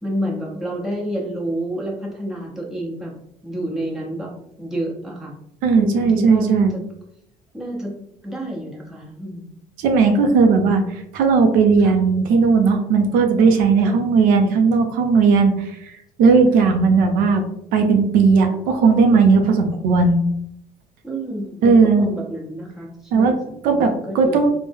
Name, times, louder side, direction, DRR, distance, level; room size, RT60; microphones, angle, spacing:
voice 1, 0.0-3.1 3.4-4.3 4.6-5.3 5.7-6.8 7.5-7.9 8.2-9.5 10.1-10.3 11.8-11.9 13.8-14.0 16.6-16.7 21.0-24.5, equal, 5° right, -4 dB, 0.9 m, -29 dB
voice 2, 5.6-6.7 9.8-15.9 16.2-17.4 17.7-20.2 21.6-22.1 23.1-23.3 23.6-24.5, right 4 dB, 80° right, 4 dB, 0.5 m, -16 dB
3.4 x 2.1 x 3.4 m, 0.76 s
cardioid pair, 120°, 14 cm